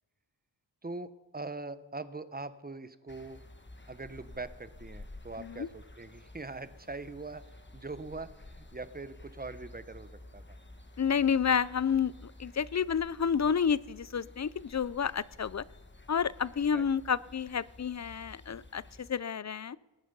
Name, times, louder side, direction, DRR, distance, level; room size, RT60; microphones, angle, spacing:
voice 1, 0.8-3.4 3.9-10.6 16.7-16.9, right 3 dB, 20° right, 13 dB, 0.8 m, -42 dB
sound 1, 3.1-19.1, left 2 dB, 25° left, 1.2 m, -52 dB
voice 2, 5.4-5.7 11.0-15.6 16.1-19.8, left 7 dB, 40° left, 20 dB, 0.4 m, -30 dB
20.0 x 10.5 x 5.4 m, 1.2 s
wide cardioid pair, 70°, 44 cm